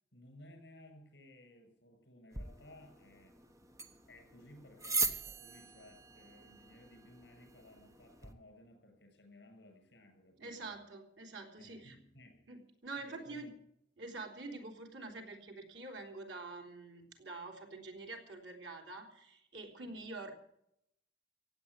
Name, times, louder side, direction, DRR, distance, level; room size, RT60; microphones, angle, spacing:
voice 1, 0.1-3.4 4.1-10.7 11.6-12.5 12.9-13.4 19.8-20.0, left 1 dB, 70° left, 4 dB, 6.9 m, -58 dB
sound 1, 2.3-8.3, right 3 dB, 20° right, 1.2 m, -41 dB
voice 2, 10.4-11.9 12.5-13.5 14.0-20.3, right 3 dB, 85° right, 3 dB, 3.5 m, -46 dB
16.0 x 9.0 x 9.5 m, 0.75 s
head